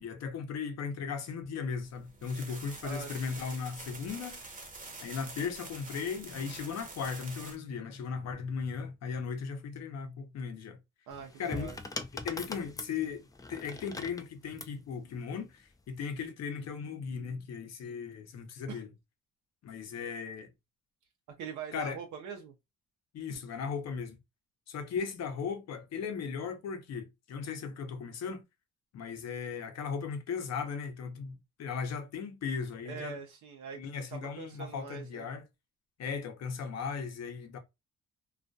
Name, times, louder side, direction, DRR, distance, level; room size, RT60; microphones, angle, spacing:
voice 1, 0.0-4.4 5.0-10.8 11.4-11.7 12.2-13.2 13.5-18.9 19.6-20.5 21.7-22.0 23.1-24.2 24.7-28.4 28.9-33.2 33.7-35.4 36.0-37.6, left 6 dB, 60° left, 0.7 m, -37 dB
sound 1, 1.8-7.6, right 3 dB, 25° right, 0.8 m, -46 dB
voice 2, 2.8-3.4 11.1-11.8 18.7-18.8 21.3-22.5 32.9-33.8 34.1-35.3, right 6 dB, 80° right, 0.6 m, -43 dB
sound 2, 11.1-14.8 15.8-16.2, left 3 dB, 10° left, 0.3 m, -41 dB
2.3 x 2.2 x 2.5 m
cardioid pair, 90°, 30 cm